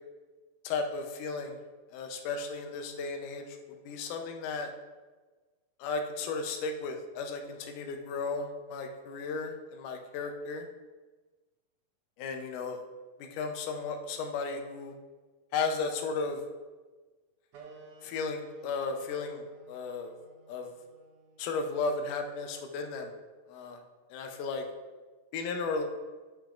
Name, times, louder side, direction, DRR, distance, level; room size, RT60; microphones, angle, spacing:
voice 1, 0.6-1.6 1.9-4.7 5.8-10.7 12.2-12.8 13.2-14.9 15.5-16.4 18.0-20.1 20.5-20.7 21.4-23.1 23.5-23.8 24.1-24.7 25.3-25.8, left 4 dB, 75° left, 4 dB, 2.2 m, -34 dB
sound 1, 17.5-22.6, right 3 dB, 90° right, 1.2 m, -55 dB
10.0 x 6.1 x 2.5 m, 1.3 s
omnidirectional pair, 3.9 m